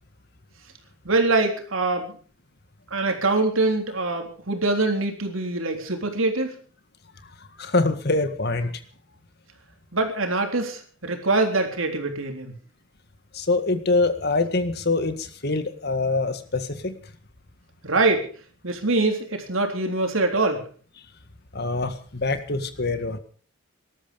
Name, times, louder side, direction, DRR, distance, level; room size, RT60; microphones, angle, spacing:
voice 1, 1.1-2.1 2.9-6.5 9.9-12.5 17.8-18.3 18.6-20.7, right 2 dB, 85° right, 4 dB, 3.7 m, -24 dB
voice 2, 7.6-8.8 13.3-17.0 21.5-23.2, left 3 dB, 55° left, 10 dB, 1.8 m, -24 dB
19.5 x 13.0 x 5.3 m, 0.42 s
head